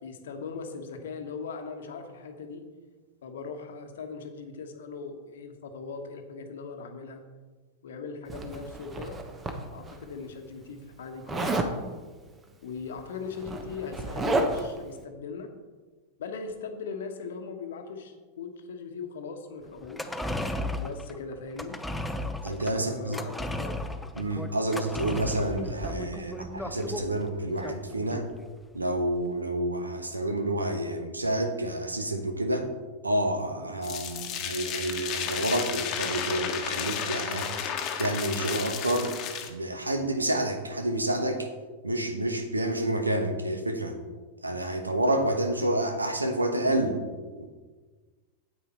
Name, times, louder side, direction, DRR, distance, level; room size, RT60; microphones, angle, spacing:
voice 1, 0.0-2.6 3.2-7.2 7.8-9.2 9.7-11.6 12.6-15.5 16.2-20.1 20.8-21.8 22.8-23.8, left 5 dB, 65° left, 6 dB, 1.3 m, -39 dB
Zipper (clothing), 8.3-10.0 11.3-11.8 12.9-13.0 13.3-14.8, right 2 dB, 20° right, 1.2 m, -30 dB
sound 1, 19.8-28.4 28.7-28.8, left 1 dB, 5° left, 0.8 m, -35 dB
voice 2, 22.4-23.2 24.2-28.3 28.7-32.7 33.0-37.7 38.0-39.2 39.5-41.5 41.8-44.0 44.4-47.0 47.4-47.5, right 1 dB, 90° right, 6 dB, 1.2 m, -29 dB
sound 2, 33.8-39.5, left 8 dB, 40° left, 1.3 m, -33 dB
9.0 x 8.2 x 4.4 m, 1.3 s
figure-of-eight pair, 95°, 0 cm